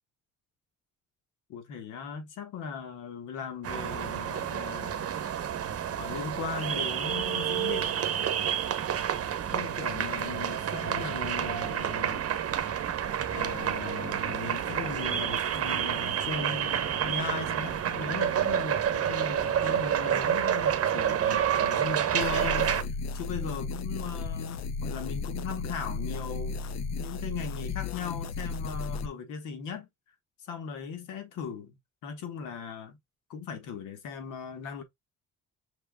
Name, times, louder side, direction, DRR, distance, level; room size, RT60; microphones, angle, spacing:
voice 1, 1.5-5.2 5.9-8.0 9.5-12.3 13.3-26.6 27.0-29.9 30.5-33.0 33.3-34.8, left 6 dB, 90° left, 1.4 m, -38 dB
sound 1, 3.6-22.8, right 9 dB, 50° right, 0.9 m, -29 dB
sound 2, 22.2-29.1, left 4 dB, 60° left, 0.6 m, -34 dB
5.9 x 3.5 x 2.2 m
cardioid pair, 90°, 30 cm